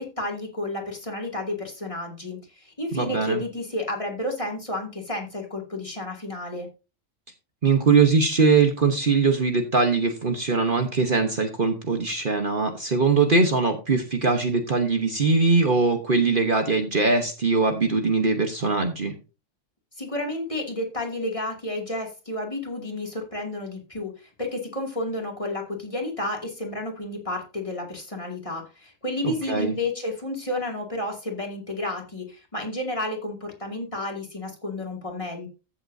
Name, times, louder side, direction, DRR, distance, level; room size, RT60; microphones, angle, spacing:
voice 1, 0.0-6.7 20.0-24.1 24.4-35.5, left 1 dB, 25° left, 0 dB, 2.6 m, -31 dB
voice 2, 2.9-3.4 7.6-19.1 29.2-29.7, right 4 dB, 45° right, 5 dB, 1.2 m, -21 dB
14.5 x 7.2 x 2.7 m, 0.31 s
omnidirectional pair, 1.3 m